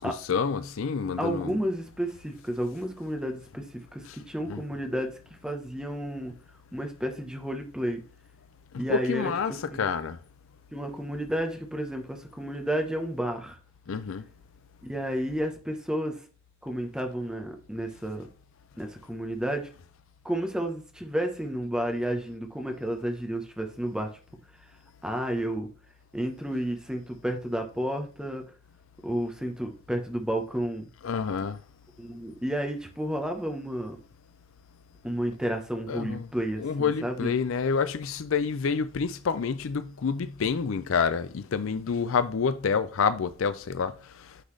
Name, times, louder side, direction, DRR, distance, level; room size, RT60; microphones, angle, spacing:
voice 1, 0.0-1.5 4.5-4.6 8.9-9.5 9.8-10.2 13.9-14.2 31.0-31.6 35.9-36.3 36.6-43.9, left 5 dB, 65° left, 0.4 m, -28 dB
voice 2, 1.2-6.3 6.7-8.0 8.8-9.8 10.7-13.6 14.8-16.2 16.6-18.3 18.8-19.7 20.2-24.2 25.0-25.7 26.1-28.4 29.0-30.9 32.0-34.0 35.0-37.3, right 1 dB, 5° right, 1.0 m, -31 dB
9.8 x 3.9 x 3.3 m
head